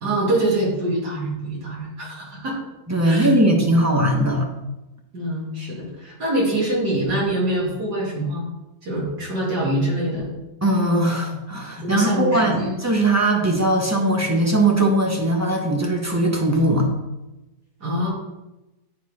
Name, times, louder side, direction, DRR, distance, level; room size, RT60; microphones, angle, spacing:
voice 1, 0.0-2.6 3.1-3.3 5.1-8.5 8.8-10.3 11.8-12.8 17.8-18.1, right 1 dB, 85° right, -5 dB, 3.0 m, -24 dB
voice 2, 2.9-4.5 10.6-16.9, right 1 dB, 15° right, 0 dB, 0.8 m, -20 dB
10.0 x 3.9 x 4.9 m, 1.0 s
omnidirectional pair, 1.7 m